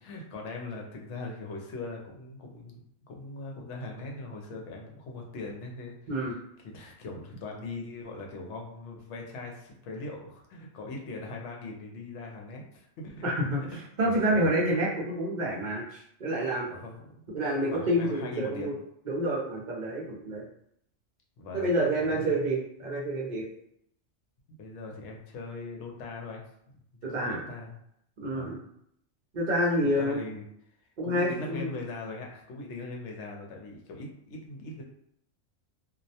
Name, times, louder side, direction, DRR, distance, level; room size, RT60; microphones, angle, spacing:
voice 1, 0.0-6.0 6.6-13.4 13.7-13.8 14.0-14.5 16.6-17.3 17.7-18.8 21.4-21.7 22.0-22.4 24.6-26.4 27.1-27.8 28.3-28.6 29.8-30.4 31.0-34.8, left 3 dB, 70° left, 1 dB, 0.9 m, -40 dB
voice 2, 13.2-16.7 17.3-18.7 19.1-20.4 21.5-23.4 27.0-27.4 28.2-28.6 29.3-30.2 31.0-31.7, right 1 dB, 50° right, -4 dB, 0.5 m, -28 dB
2.3 x 2.1 x 2.7 m, 0.72 s
omnidirectional pair, 1.3 m